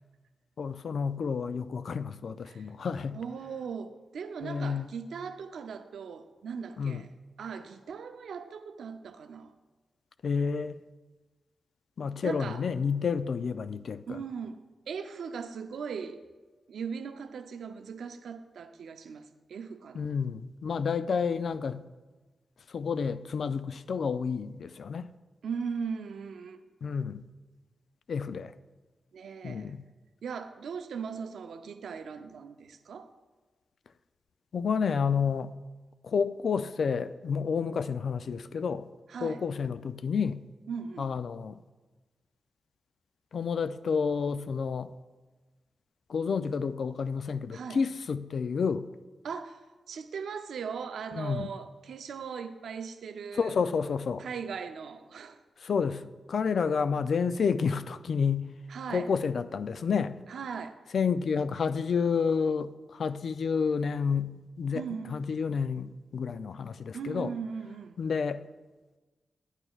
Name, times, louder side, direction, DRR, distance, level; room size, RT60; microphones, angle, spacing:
voice 1, 0.6-3.2 4.4-4.9 6.8-7.0 10.2-10.8 12.0-14.2 20.0-21.8 22.7-25.1 26.8-27.2 28.1-28.5 29.4-29.8 34.5-35.5 36.0-38.8 39.2-40.4 41.0-41.6 43.3-44.9 46.1-48.9 51.2-51.5 53.4-54.2 55.6-56.0 56.3-58.5 58.9-60.2 60.9-64.8 65.1-67.3 68.0-68.4, left 6 dB, 70° left, 13 dB, 0.3 m, -30 dB
voice 2, 3.1-7.1 7.4-9.5 12.2-12.7 14.1-16.2 16.7-20.1 25.4-26.6 29.1-29.7 30.2-33.1 39.1-39.4 40.7-41.1 47.5-47.8 49.2-53.6 54.2-55.4 58.7-59.1 60.3-60.8 64.7-65.2 66.9-68.0, right 6 dB, 85° right, 9 dB, 0.5 m, -39 dB
9.6 x 8.9 x 2.3 m, 1.2 s
cardioid pair, 60°, 0 cm